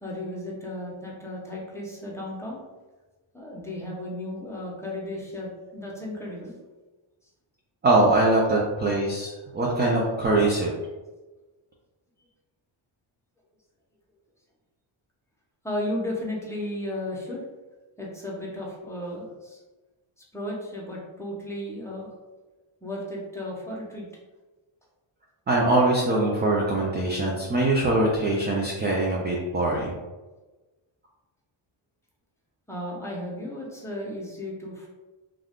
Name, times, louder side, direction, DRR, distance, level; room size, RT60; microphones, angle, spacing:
voice 1, 0.0-2.6 3.3-6.5 15.6-17.4 18.0-19.6 20.3-22.1 22.8-24.1 32.7-34.9, left 1 dB, 5° left, -4 dB, 0.7 m, -34 dB
voice 2, 7.8-10.7 25.5-29.9, right 2 dB, 25° right, -2 dB, 0.3 m, -22 dB
2.4 x 2.3 x 3.4 m, 1.2 s
cardioid pair, 115°, 49 cm